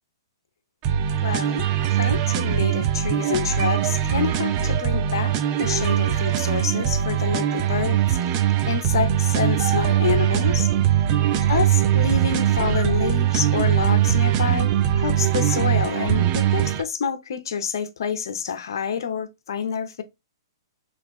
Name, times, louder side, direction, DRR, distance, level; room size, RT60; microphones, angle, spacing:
sound 1, 0.8-16.8, right 11 dB, 35° right, 0.5 m, -21 dB
voice 1, 1.2-8.4 8.7-10.7 11.4-20.0, left 7 dB, 65° left, 0.6 m, -28 dB
3.4 x 3.1 x 2.2 m
hypercardioid pair, 125°, 2 cm